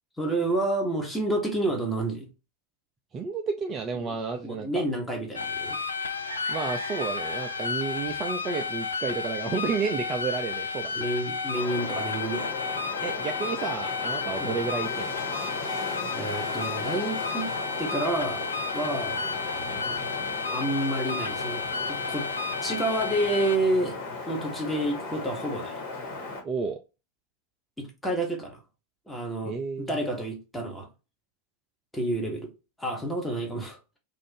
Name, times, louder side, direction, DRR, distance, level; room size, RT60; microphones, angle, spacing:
voice 1, 0.2-2.3 3.9-4.2 4.4-5.8 10.9-12.5 14.4-14.6 16.1-17.5 17.8-18.5 18.7-19.3 20.5-22.3 22.6-24.0 24.3-25.8 27.8-28.6 29.1-30.9 31.9-32.5 32.8-33.8, right 1 dB, 5° left, 1.1 m, -29 dB
voice 2, 3.1-4.8 6.5-11.0 13.0-15.1 26.4-26.8 29.5-29.9, right 5 dB, 25° right, 0.4 m, -31 dB
sound 1, 5.3-23.6, left 4 dB, 75° left, 0.3 m, -32 dB
sound 2, 6.0-10.9, right 4 dB, 60° right, 0.7 m, -44 dB
Wind, 11.5-26.4, left 3 dB, 55° left, 1.4 m, -36 dB
2.6 x 2.4 x 3.6 m
figure-of-eight pair, 90°, 0 cm